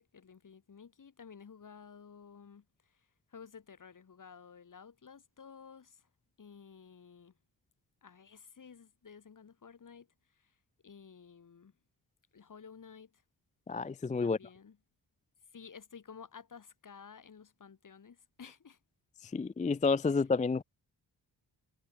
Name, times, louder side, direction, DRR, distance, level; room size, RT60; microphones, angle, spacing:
voice 1, 0.0-2.6 3.3-6.0 6.4-7.3 8.0-10.1 10.8-11.7 12.3-13.1 14.2-14.8 15.5-18.8, left 6 dB, 45° left, 2.0 m, -53 dB
voice 2, 13.7-14.4 19.3-20.6, left 4 dB, 20° left, 0.3 m, -29 dB
wide cardioid pair, 175°, 42 cm